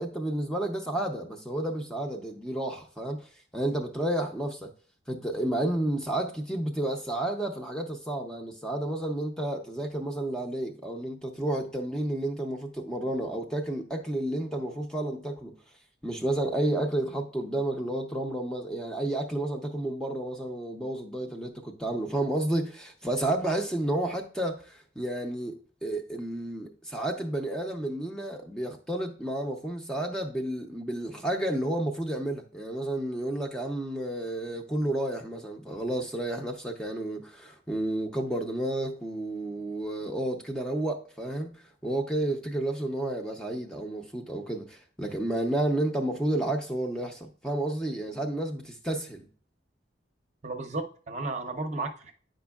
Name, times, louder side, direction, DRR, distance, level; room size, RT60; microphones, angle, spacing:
voice 1, 0.0-3.3 3.5-4.7 5.1-15.5 16.0-49.3, right 1 dB, 5° left, 0.6 m, -31 dB
voice 2, 50.4-52.1, right 3 dB, 35° right, 0.7 m, -33 dB
9.1 x 5.2 x 2.3 m
head